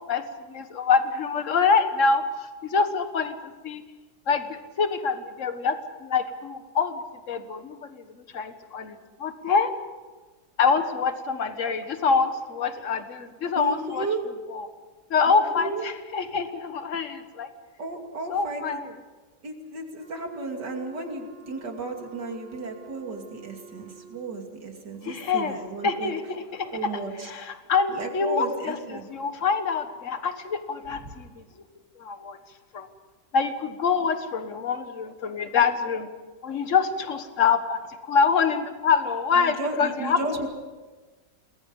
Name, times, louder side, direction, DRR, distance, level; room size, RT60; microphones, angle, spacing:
voice 1, 0.1-3.4 3.6-3.8 4.3-7.0 7.3-9.7 10.6-14.1 14.5-14.7 15.1-17.5 18.3-18.9 25.0-25.6 25.8-26.7 27.2-31.6 32.0-32.4 32.7-32.9 33.3-36.1 36.4-40.2, left 5 dB, 50° left, 9 dB, 1.7 m, -25 dB
voice 2, 13.5-14.2 15.3-15.8 17.8-18.8 19.4-26.1 26.7-27.3 27.9-29.0 31.0-31.1 39.4-40.5, right 3 dB, 80° right, 3 dB, 3.3 m, -34 dB
Wind instrument woodwind instrument, 20.0-24.6, right 3 dB, 5° left, 6.8 m, -49 dB
28.0 x 21.0 x 5.5 m, 1.3 s
omnidirectional pair, 1.8 m